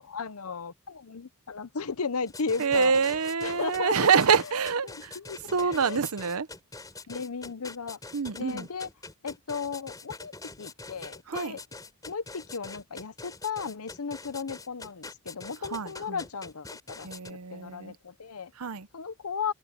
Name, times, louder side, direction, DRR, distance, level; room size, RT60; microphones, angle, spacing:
voice 1, 0.0-4.5 4.8-6.0 7.1-8.0 8.4-8.9 9.2-10.3 10.6-11.6 12.0-18.5 18.9-19.5, left 5 dB, 80° left, 0.8 m, -35 dB
sound 1, 2.3-17.3, left 3 dB, 15° left, 4.0 m, -44 dB
voice 2, 2.6-5.2 5.5-6.5 8.1-8.7 11.3-11.6 15.7-16.2 17.0-18.0 18.6-18.9, right 6 dB, 85° right, 0.8 m, -26 dB
head